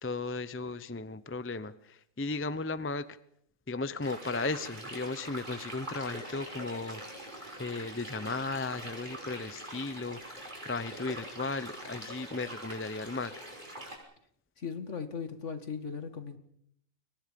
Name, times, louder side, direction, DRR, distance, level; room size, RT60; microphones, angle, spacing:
voice 1, 0.0-3.1 3.7-7.0 7.6-13.3, left 3 dB, 10° left, 14 dB, 0.6 m, -36 dB
sound 1, 4.0-14.0, right 1 dB, 35° right, 6.1 m, -43 dB
voice 2, 14.6-16.4, left 6 dB, 60° left, 9 dB, 2.3 m, -38 dB
29.5 x 23.5 x 5.3 m, 0.70 s
omnidirectional pair, 1.4 m